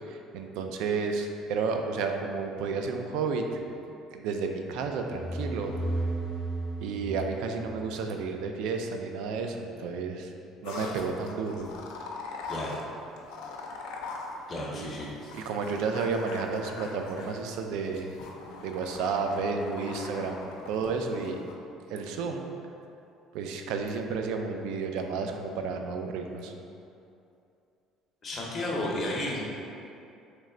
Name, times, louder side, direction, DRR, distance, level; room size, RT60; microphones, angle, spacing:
voice 1, 0.1-3.5 3.9-5.7 6.8-10.3 10.6-11.7 14.7-14.9 15.3-18.1 18.6-21.4 21.9-22.5 23.3-26.5, right 4 dB, 75° right, 4 dB, 0.3 m, -32 dB
sound 1, 5.0-8.4, right 2 dB, 40° right, 1.2 m, -34 dB
sound 2, 10.6-21.5, left 3 dB, 80° left, 0.4 m, -42 dB
voice 2, 12.5-12.8 14.5-15.3 28.2-29.4, left 1 dB, 30° left, -3 dB, 0.7 m, -33 dB
3.2 x 3.1 x 3.7 m, 2.6 s
cardioid pair, 145°, 0 cm